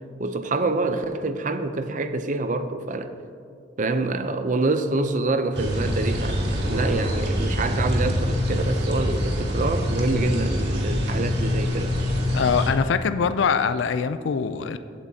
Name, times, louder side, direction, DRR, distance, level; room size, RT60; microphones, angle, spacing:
voice 1, 0.2-3.1 3.8-12.0, right 3 dB, 45° right, 9 dB, 0.6 m, -26 dB
sound 1, 5.5-12.7, left 1 dB, 65° right, 1.7 m, -25 dB
voice 2, 12.3-14.8, left 6 dB, 80° left, 12 dB, 0.4 m, -23 dB
15.0 x 8.3 x 2.8 m, 2.3 s
head